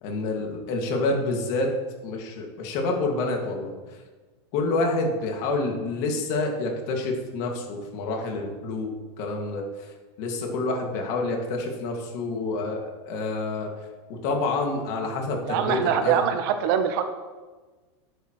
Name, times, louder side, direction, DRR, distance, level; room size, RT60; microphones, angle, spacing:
voice 1, 0.0-1.7 2.0-3.7 4.5-8.9 9.2-9.9 10.2-13.7 14.1-16.2, left 2 dB, 45° left, 2 dB, 2.0 m, -28 dB
voice 2, 15.5-17.0, right 8 dB, 50° right, 8 dB, 0.8 m, -24 dB
11.5 x 8.2 x 3.1 m, 1.3 s
supercardioid pair, 165°, 15 cm